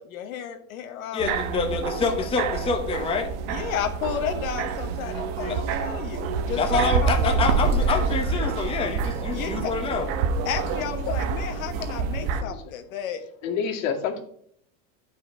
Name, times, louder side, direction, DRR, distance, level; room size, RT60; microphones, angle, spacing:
voice 1, 0.0-1.4 3.5-7.1 9.3-9.7 10.4-13.2, left 8 dB, 80° left, 6 dB, 1.4 m, -32 dB
voice 2, 1.1-3.3 5.5-5.6 6.6-10.1, left 4 dB, 15° left, 3 dB, 0.9 m, -26 dB
sound 1, 1.2-12.4, right 5 dB, 60° right, 1.1 m, -27 dB
voice 3, 13.4-14.2, left 6 dB, 65° left, 2 dB, 2.2 m, -27 dB
11.0 x 5.7 x 4.6 m, 0.65 s
supercardioid pair, 150°, 41 cm